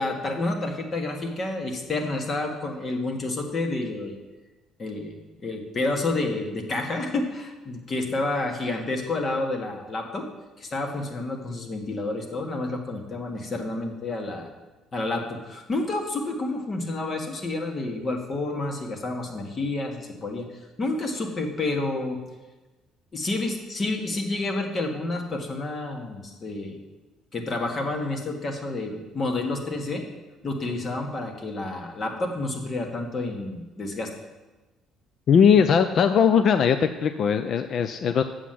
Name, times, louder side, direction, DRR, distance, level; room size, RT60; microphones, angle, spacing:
voice 1, 0.0-4.2 4.8-10.3 10.6-14.5 14.9-20.5 20.8-22.2 23.1-26.8 27.3-30.0 30.4-34.1, left 2 dB, 35° left, 3 dB, 1.7 m, -29 dB
voice 2, 35.3-38.2, left 7 dB, 50° left, 9 dB, 0.5 m, -19 dB
8.2 x 7.3 x 7.7 m, 1.2 s
cardioid pair, 130°, 0 cm